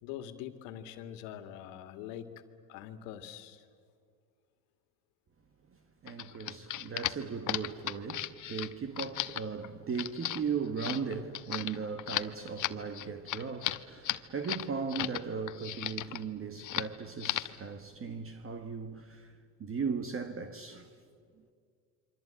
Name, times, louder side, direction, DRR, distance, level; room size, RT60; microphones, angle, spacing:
voice 1, 0.0-2.3 2.7-3.7, left 10 dB, 75° left, 2.1 m, -44 dB
voice 2, 6.0-20.9, right 5 dB, 30° right, 1.4 m, -37 dB
sound 1, 6.1-15.2 15.5-16.2 16.6-16.9 17.2-17.6, left 13 dB, 40° left, 1.0 m, -36 dB
27.5 x 24.5 x 8.9 m
supercardioid pair, 110°, 46 cm